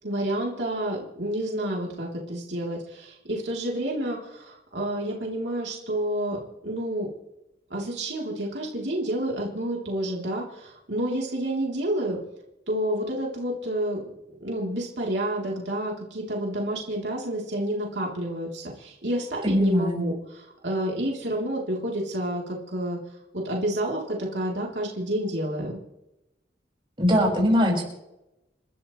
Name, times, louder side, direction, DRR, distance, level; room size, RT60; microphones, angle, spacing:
voice 1, 0.0-7.1 7.7-12.2 12.7-14.1 14.4-23.0 23.3-25.8, right 1 dB, 70° right, -3 dB, 3.6 m, -29 dB
voice 2, 19.4-20.0 27.0-27.8, equal, 30° right, -3 dB, 6.0 m, -21 dB
29.5 x 13.0 x 3.3 m, 0.91 s
head